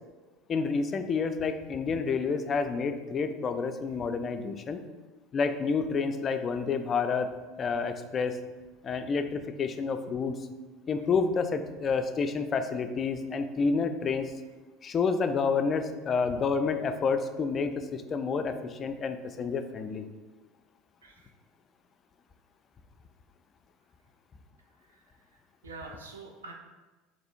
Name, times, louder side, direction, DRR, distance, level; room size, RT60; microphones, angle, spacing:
voice 1, 0.5-4.8 5.3-7.3 7.6-8.4 8.8-10.3 10.9-14.3 14.8-20.1, left 5 dB, 35° left, 8 dB, 0.3 m, -29 dB
voice 2, 24.8-26.5, right 3 dB, 85° right, 1 dB, 0.4 m, -47 dB
4.1 x 3.0 x 2.5 m, 1.2 s
hypercardioid pair, 75°, 0 cm